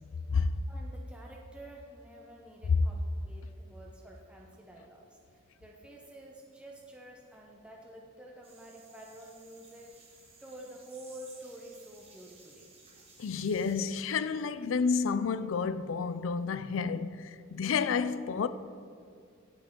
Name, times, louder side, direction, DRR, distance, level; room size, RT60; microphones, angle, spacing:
voice 1, 0.7-9.9 10.4-12.7, right 1 dB, 5° right, 0.8 m, -49 dB
sound 1, 8.4-13.9, right 3 dB, 30° right, 1.9 m, -57 dB
voice 2, 13.2-18.5, left 5 dB, 75° left, 0.4 m, -30 dB
17.5 x 6.0 x 3.7 m
head